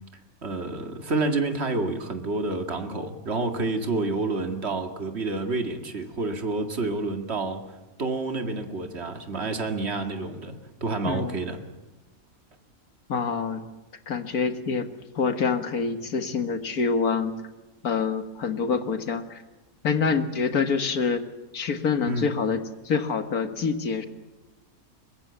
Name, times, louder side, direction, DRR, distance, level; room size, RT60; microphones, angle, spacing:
voice 1, 0.4-7.6 8.0-11.6 22.1-22.3, right 3 dB, 45° right, 5 dB, 2.3 m, -29 dB
voice 2, 13.1-13.6 14.1-14.9 15.2-17.3 17.8-19.4 19.8-21.2 21.5-24.1, left 5 dB, 85° left, 8 dB, 2.1 m, -26 dB
23.0 x 21.5 x 8.3 m, 1.1 s
omnidirectional pair, 1.5 m